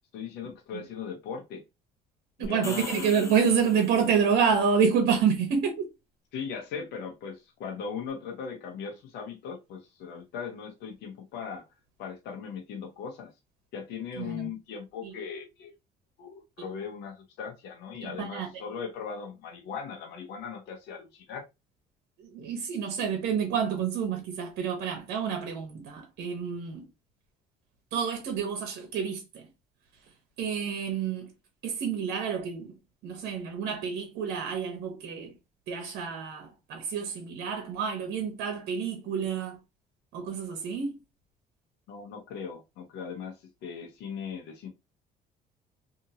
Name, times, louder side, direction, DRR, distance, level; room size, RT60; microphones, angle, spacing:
voice 1, 0.1-1.6 2.4-3.5 6.3-11.6 12.0-13.3 13.7-15.8 16.2-21.4 41.9-44.7, left 6 dB, 85° left, 0.8 m, -38 dB
sound 1, 2.4-4.4, left 2 dB, 15° left, 0.6 m, -42 dB
voice 2, 2.4-5.9 14.2-14.5 15.0-15.1 16.6-16.7 18.0-18.5 22.2-26.9 27.9-29.4 30.4-31.3 31.6-32.7 33.0-35.3 35.7-39.6 40.1-41.0, right 6 dB, 80° right, 0.9 m, -28 dB
2.8 x 2.6 x 2.7 m
cardioid pair, 110°, 17 cm